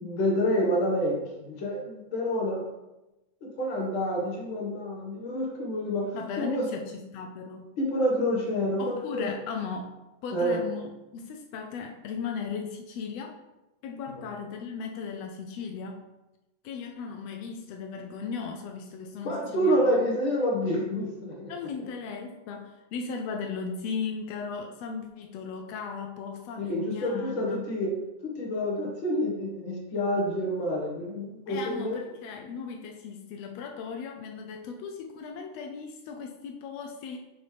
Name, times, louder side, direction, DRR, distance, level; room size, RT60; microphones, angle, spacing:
voice 1, 0.0-2.6 3.4-6.7 7.8-9.3 10.3-10.6 19.2-21.5 26.6-27.9 28.2-32.0, equal, 50° left, -2 dB, 1.9 m, -28 dB
voice 2, 6.1-7.8 8.8-9.9 10.2-13.4 13.8-16.0 16.6-20.0 21.5-27.6 31.5-37.2, left 5 dB, 90° left, 3 dB, 1.4 m, -37 dB
7.1 x 5.3 x 3.4 m, 0.99 s
omnidirectional pair, 3.6 m